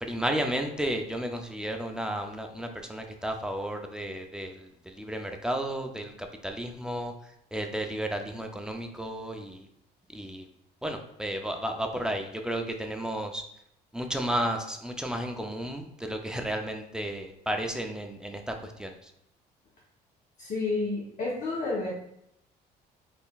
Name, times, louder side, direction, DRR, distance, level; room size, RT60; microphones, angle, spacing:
voice 1, 0.0-7.1 7.5-9.7 10.1-10.5 10.8-13.4 13.9-19.1, right 1 dB, 5° right, 4 dB, 0.4 m, -33 dB
voice 2, 20.4-21.9, left 3 dB, 50° left, -3 dB, 0.9 m, -30 dB
3.8 x 3.3 x 2.3 m, 0.76 s
cardioid pair, 110°, 17 cm